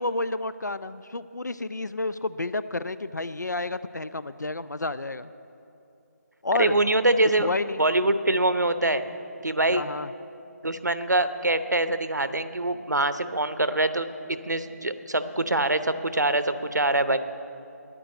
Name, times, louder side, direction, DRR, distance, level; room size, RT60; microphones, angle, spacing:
voice 1, 0.0-5.3 6.4-6.8 7.4-7.8 9.7-10.1, left 2 dB, 90° left, 14 dB, 0.4 m, -30 dB
voice 2, 6.5-9.0 9.4-9.8 10.6-17.2, right 2 dB, 85° right, 11 dB, 0.8 m, -24 dB
10.5 x 10.0 x 8.1 m, 2.7 s
figure-of-eight pair, 155°, 9 cm